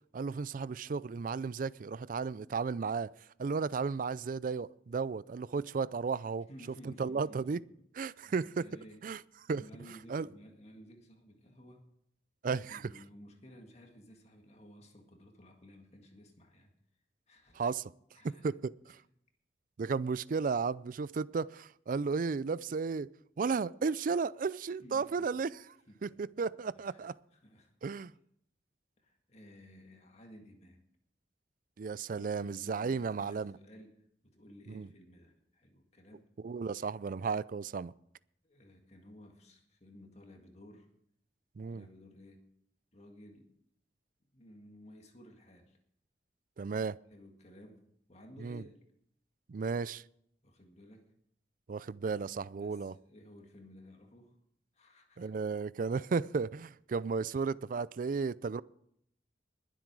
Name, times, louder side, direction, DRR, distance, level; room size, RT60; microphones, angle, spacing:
voice 1, 0.1-3.1 3.4-6.5 6.8-7.6 8.0-8.7 9.0-9.2 9.5-9.6 10.1-10.3 12.4-12.8 17.5-17.9 18.2-19.0 19.8-23.1 23.4-25.6 26.0-27.2 27.8-28.1 31.8-33.6 34.7-34.9 36.4-37.9 41.6-41.9 46.6-47.0 48.4-48.6 49.5-50.0 51.7-52.9 55.2-58.6, right 5 dB, 50° right, 0.4 m, -34 dB
voice 2, 6.5-7.6 8.2-9.1 9.6-11.9 12.5-16.7 17.3-17.6 18.1-18.5 24.8-25.3 25.9-26.2 26.7-27.0 27.3-28.0 29.0-30.8 32.2-36.3 38.4-40.9 41.7-42.5 42.9-43.5 44.3-45.8 47.1-48.8 50.4-51.1 52.6-54.4 54.7-55.3 56.0-56.1, equal, 40° left, 1.9 m, -56 dB
21.0 x 7.8 x 4.7 m
head